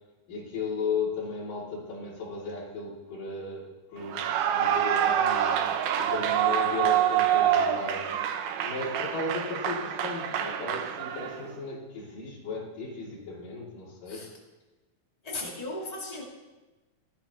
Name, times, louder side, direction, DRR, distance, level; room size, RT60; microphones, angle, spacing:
voice 1, 0.3-5.6 6.0-8.1 8.6-14.3, left 3 dB, 70° left, -5 dB, 4.6 m, -35 dB
Clapping / Cheering / Applause, 4.0-11.5, right 10 dB, 75° right, 2.3 m, -26 dB
voice 2, 15.2-16.2, left 2 dB, 10° left, -4 dB, 2.2 m, -36 dB
19.0 x 11.5 x 3.1 m, 1.1 s
omnidirectional pair, 3.9 m